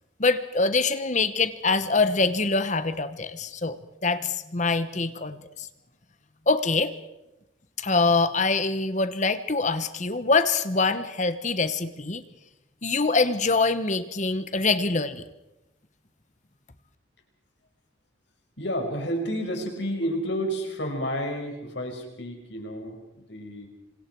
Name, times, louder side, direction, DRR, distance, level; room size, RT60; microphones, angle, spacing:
voice 1, 0.2-3.8 4.0-5.7 6.5-6.9 7.8-12.2 12.8-15.3, left 3 dB, 40° left, 12 dB, 1.1 m, -24 dB
voice 2, 18.6-23.7, equal, 65° left, 3 dB, 5.8 m, -30 dB
27.5 x 25.5 x 4.7 m, 0.93 s
head